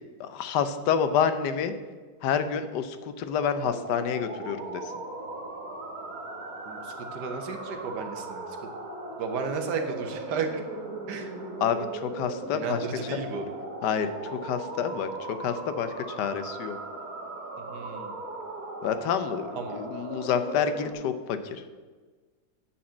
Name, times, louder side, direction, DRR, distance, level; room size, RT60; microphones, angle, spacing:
voice 1, 0.2-1.7 2.2-4.8 11.6-12.9 13.8-15.1 15.4-15.9 16.2-16.8 18.8-21.4, left 7 dB, 85° left, 10 dB, 1.3 m, -28 dB
sound 1, 3.6-20.9, right 2 dB, 60° right, 2.1 m, -38 dB
voice 2, 6.7-8.4 9.2-10.5 11.1-11.3 12.5-13.5 17.7-18.1 19.6-19.9, right 5 dB, 80° right, 6 dB, 1.6 m, -33 dB
9.4 x 4.3 x 7.5 m, 1.4 s
omnidirectional pair, 1.8 m